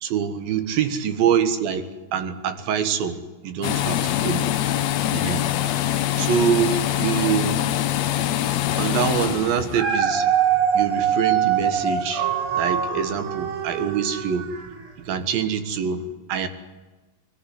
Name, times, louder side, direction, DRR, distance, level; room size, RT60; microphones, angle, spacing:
voice 1, 0.0-4.5 4.8-5.5 6.2-7.6 8.8-10.3 10.7-14.5 15.0-16.0 16.3-16.5, right 8 dB, 75° right, 9 dB, 3.4 m, -25 dB
sound 1, 3.6-9.8, left 12 dB, 75° left, 1.6 m, -24 dB
Dog, 9.5-14.9 15.4-15.5, right 8 dB, 45° right, 2.2 m, -23 dB
22.0 x 15.0 x 9.7 m, 1.2 s
omnidirectional pair, 4.2 m